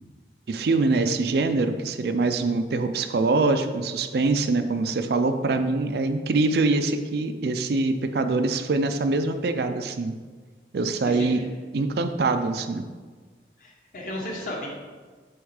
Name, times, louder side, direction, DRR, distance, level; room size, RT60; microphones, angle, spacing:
voice 1, 0.5-10.1 10.7-11.4 11.7-12.9, right 3 dB, 60° right, 9 dB, 0.4 m, -24 dB
voice 2, 11.0-11.5 13.6-14.7, left 1 dB, 50° left, -2 dB, 1.2 m, -34 dB
7.1 x 3.2 x 4.8 m, 1.5 s
head